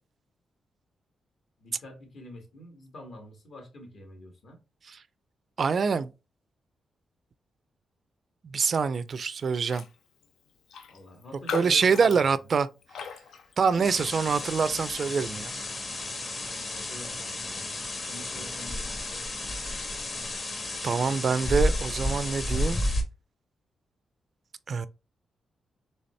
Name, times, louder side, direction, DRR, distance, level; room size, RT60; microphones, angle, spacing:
voice 1, 1.6-4.6 10.9-12.6 16.4-17.7 18.1-19.2, equal, 65° left, 2.0 m, -46 dB
voice 2, 5.6-6.1 8.4-9.8 11.5-12.7 13.6-15.5 19.7-19.8 20.8-22.8 24.7-24.9, right 5 dB, 55° right, 0.4 m, -25 dB
Raindrop, 9.6-9.9 10.2-10.3 10.7-14.3 14.7-15.0, left 7 dB, 85° left, 0.6 m, -39 dB
sound 1, 13.8-23.0, left 1 dB, 45° left, 1.2 m, -32 dB
4.2 x 3.3 x 3.2 m
cardioid pair, 90°, 0 cm